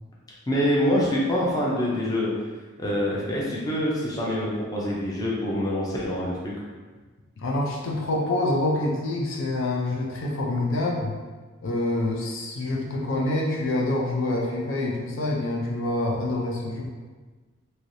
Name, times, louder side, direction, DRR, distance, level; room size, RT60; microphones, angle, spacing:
voice 1, 0.5-2.3 2.8-6.5, equal, 20° left, -5 dB, 0.5 m, -25 dB
voice 2, 7.4-11.2 11.6-16.8, left 2 dB, 70° left, -2 dB, 0.5 m, -26 dB
3.2 x 2.8 x 2.6 m, 1.3 s
head